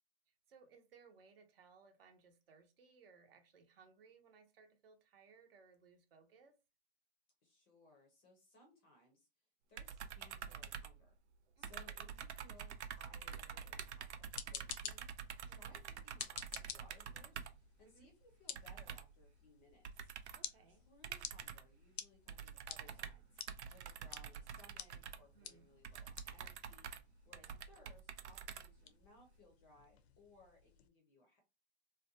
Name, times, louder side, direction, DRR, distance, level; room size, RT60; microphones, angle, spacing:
voice 1, 0.3-6.6 11.6-11.9 15.5-15.8 17.8-18.1 20.3-20.9 25.3-25.7 27.3-27.7, right 5 dB, 55° right, 0.8 m, -65 dB
voice 2, 7.4-9.3 9.7-11.1 11.6-15.1 15.4-17.5 17.8-20.1 20.7-23.3 23.7-26.9 27.2-31.4, left 2 dB, 15° left, 0.5 m, -65 dB
sound 1, 9.8-11.4 11.6-17.7 18.5-19.2 19.8-20.5 21.0-21.8 22.3-29.1, right 8 dB, 80° right, 0.5 m, -48 dB
sound 2, 14.1-30.9, left 9 dB, 70° left, 0.5 m, -53 dB
2.6 x 2.2 x 2.7 m
hypercardioid pair, 145°, 33 cm